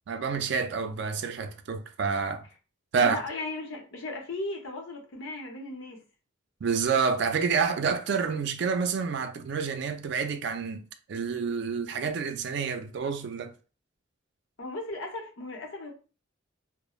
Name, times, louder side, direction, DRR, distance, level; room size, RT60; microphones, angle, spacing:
voice 1, 0.1-2.5 2.9-3.2 6.6-10.8 11.1-13.5, right 5 dB, 60° right, 0.3 m, -28 dB
voice 2, 3.0-6.0 14.6-15.9, left 2 dB, 70° left, 0.7 m, -37 dB
3.0 x 2.0 x 2.3 m
head